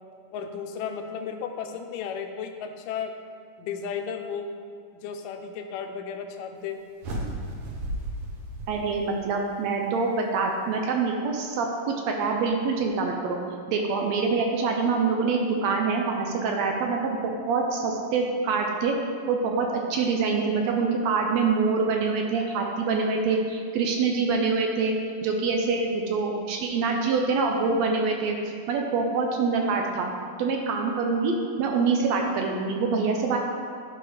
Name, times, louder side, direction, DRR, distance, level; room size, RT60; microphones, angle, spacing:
voice 1, 0.3-3.1 3.6-4.5 4.9-6.8, left 6 dB, 85° left, 5 dB, 2.2 m, -34 dB
sound 1, 7.0-9.4, right 1 dB, 60° right, 1.7 m, -34 dB
voice 2, 8.7-13.4 13.7-19.0 19.3-25.0 25.2-28.4 28.7-30.1 30.4-33.4, right 4 dB, 75° right, 2 dB, 1.6 m, -25 dB
11.5 x 4.5 x 4.9 m, 2.2 s
omnidirectional pair, 3.8 m